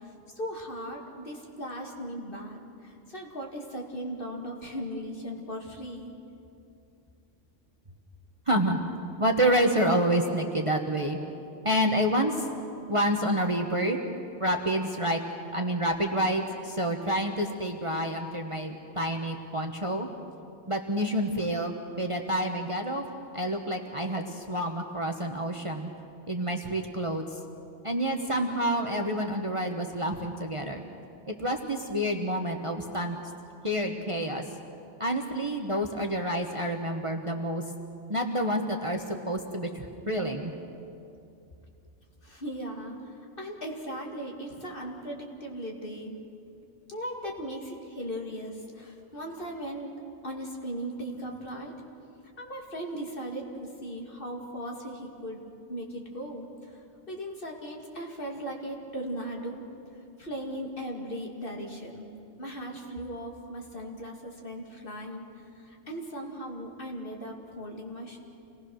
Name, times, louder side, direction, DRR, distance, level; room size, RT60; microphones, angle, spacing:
voice 1, 0.0-6.1 42.2-46.2 46.9-49.9 50.2-51.8 52.4-55.4 55.7-59.6 60.2-62.1 62.4-68.2, equal, 45° left, 0 dB, 2.6 m, -38 dB
voice 2, 8.5-8.8 9.2-11.2 11.6-12.4 12.9-14.0 14.4-15.2 15.5-20.1 20.7-23.0 23.3-25.9 26.3-27.3 27.8-30.8 31.3-33.2 33.6-34.4 35.0-37.6 38.1-40.5, equal, 25° right, 3 dB, 1.2 m, -28 dB
27.5 x 19.0 x 6.4 m, 2.7 s
omnidirectional pair, 1.3 m